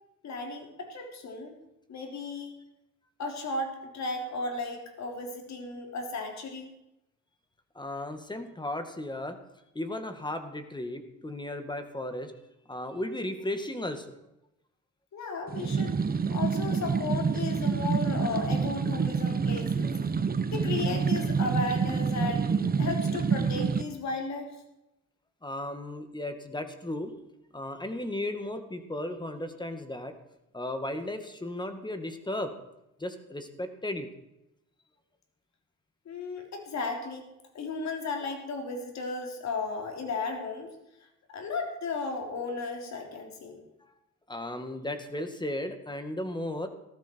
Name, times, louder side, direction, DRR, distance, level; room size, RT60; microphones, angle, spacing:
voice 1, 0.2-1.6 1.9-2.5 3.2-6.7 15.1-16.0 16.3-19.9 20.5-24.5 36.1-37.3 37.5-40.7 41.3-43.6, left 3 dB, 65° left, 3 dB, 3.5 m, -35 dB
voice 2, 7.8-9.4 9.8-12.3 12.7-14.1 25.4-27.1 27.5-30.1 30.5-32.5 33.0-34.1 43.8-43.9 44.3-46.7, left 1 dB, 15° left, 7 dB, 2.0 m, -35 dB
sound 1, 15.5-23.8, right 5 dB, 30° right, 1.0 m, -27 dB
15.0 x 13.0 x 4.6 m, 0.88 s
cardioid pair, 90°, 30 cm